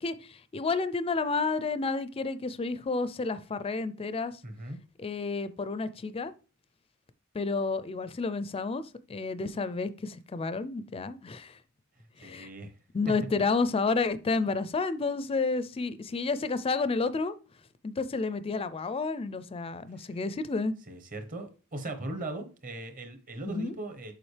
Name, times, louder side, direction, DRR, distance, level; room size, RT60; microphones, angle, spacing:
voice 1, 0.0-4.4 5.0-6.3 7.3-8.8 9.1-11.6 12.2-12.5 12.9-17.3 17.8-20.7 23.4-23.7, left 4 dB, 25° left, 0.4 m, -30 dB
voice 2, 4.4-4.8 12.2-12.7 20.0-20.1 20.9-24.1, right 2 dB, 40° right, 1.1 m, -39 dB
7.1 x 5.0 x 3.3 m
head